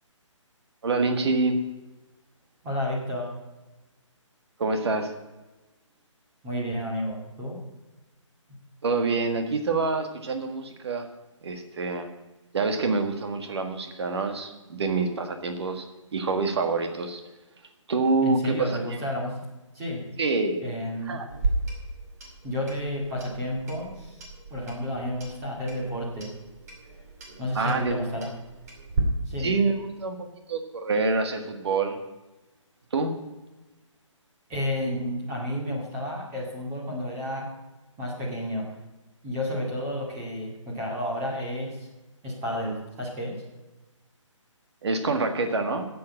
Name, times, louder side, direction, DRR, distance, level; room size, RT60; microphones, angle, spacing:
voice 1, 0.8-1.6 4.6-5.1 8.8-11.1 11.4-12.1 12.5-15.9 16.1-17.2 17.9-18.8 20.2-20.6 21.1-21.3 27.6-28.0 29.4-32.0 32.9-33.2 44.8-45.9, right 3 dB, 55° right, 6 dB, 1.8 m, -26 dB
voice 2, 2.6-3.3 6.4-7.6 18.2-19.4 19.7-20.0 20.6-21.2 22.4-24.2 24.5-26.3 27.4-28.3 29.3-29.5 34.5-37.5 38.0-38.7 39.2-41.9 42.2-43.4, equal, 15° right, -2 dB, 2.1 m, -31 dB
Clock, 21.3-29.0, right 2 dB, 30° right, 2.5 m, -35 dB
10.0 x 7.9 x 8.8 m, 1.1 s
hypercardioid pair, 165°, 17 cm